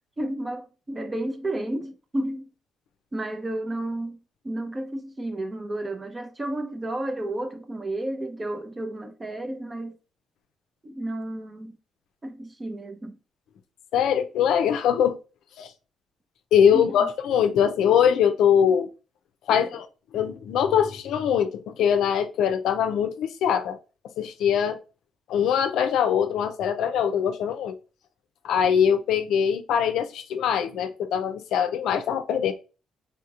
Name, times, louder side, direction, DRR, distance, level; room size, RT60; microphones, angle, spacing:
voice 1, 0.2-2.5 3.1-4.2 4.4-10.0 10.8-11.8 12.2-13.2 16.7-17.1 19.5-19.7, right 1 dB, 25° right, 0.6 m, -32 dB
voice 2, 13.9-15.2 15.6-15.7 16.5-18.9 19.5-19.9 20.1-23.8 24.2-24.8 25.3-27.8 28.4-32.5, left 8 dB, 80° left, 0.4 m, -22 dB
3.7 x 2.8 x 2.3 m
cardioid pair, 90°, 0 cm